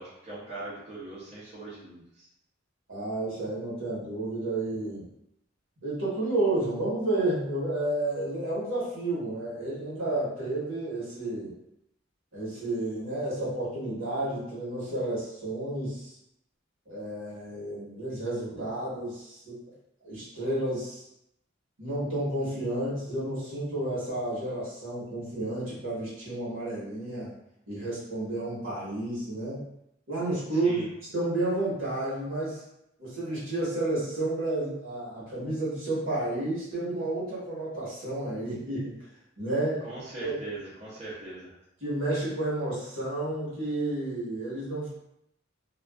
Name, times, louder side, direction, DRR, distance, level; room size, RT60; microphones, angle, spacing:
voice 1, 0.0-2.3 30.5-30.9 39.8-41.5, right 2 dB, 35° right, -8 dB, 0.6 m, -41 dB
voice 2, 2.9-5.0 5.8-11.5 12.3-16.1 16.9-19.6 20.0-21.0 21.8-27.3 27.7-29.6 30.1-30.9 31.1-32.6 33.0-38.9 39.4-39.9 40.2-40.3 41.8-44.9, right 2 dB, 75° right, -8 dB, 1.2 m, -31 dB
2.4 x 2.3 x 2.3 m, 0.81 s
head